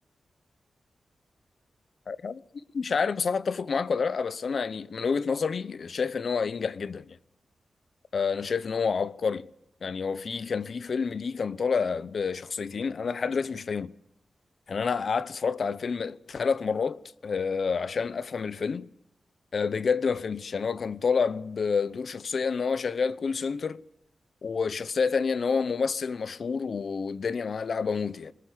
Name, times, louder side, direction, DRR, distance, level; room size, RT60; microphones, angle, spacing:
voice 1, 2.1-2.4 2.7-7.2 8.1-9.5 9.8-13.9 14.7-18.9 19.5-23.8 24.4-28.3, left 5 dB, 65° left, 1.0 m, -28 dB
22.5 x 20.5 x 8.2 m
cardioid pair, 60°, 0 cm